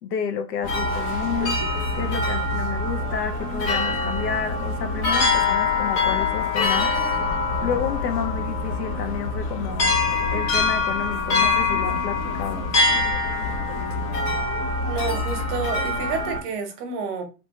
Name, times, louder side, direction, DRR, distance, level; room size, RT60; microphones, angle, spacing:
voice 1, 0.0-1.6 1.9-7.2 7.6-9.9 10.3-12.7, left 7 dB, 85° left, 0.7 m, -30 dB
sound 1, 0.6-16.4, left 3 dB, 25° left, 0.3 m, -24 dB
voice 2, 14.9-17.2, right 4 dB, 40° right, 0.8 m, -29 dB
2.9 x 2.1 x 2.8 m
hypercardioid pair, 115°, 48 cm